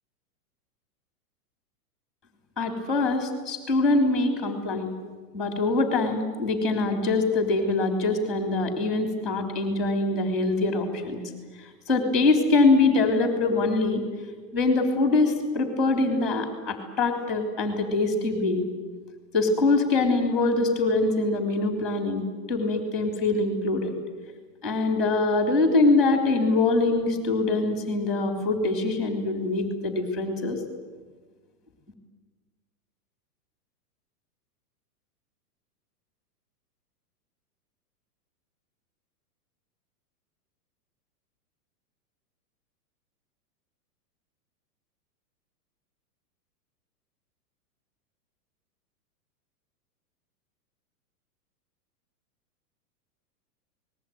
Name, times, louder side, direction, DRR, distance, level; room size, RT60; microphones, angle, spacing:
voice 1, 2.6-4.9 5.3-11.2 11.6-14.0 14.5-18.6 19.3-23.9 24.6-30.6, left 3 dB, ahead, 4 dB, 3.2 m, -24 dB
28.5 x 20.0 x 9.2 m, 1.4 s
supercardioid pair, 175°, 47 cm